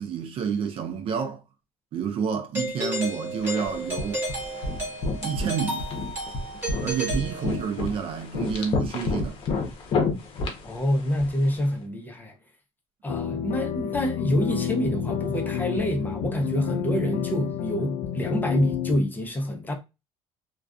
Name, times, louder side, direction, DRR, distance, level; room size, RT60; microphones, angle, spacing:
voice 1, 0.0-1.4 1.9-4.2 5.2-5.9 6.8-9.4, right 6 dB, 50° right, 0.5 m, -29 dB
Doorbell, 2.5-8.0, right 1 dB, 20° right, 1.4 m, -33 dB
sound 1, 3.4-11.6, left 3 dB, 50° left, 0.8 m, -31 dB
voice 2, 10.6-12.3 13.0-19.7, equal, 15° left, 0.7 m, -27 dB
sound 2, 13.1-19.0, left 9 dB, 80° left, 0.4 m, -30 dB
2.4 x 2.2 x 2.3 m
cardioid pair, 115°, 12 cm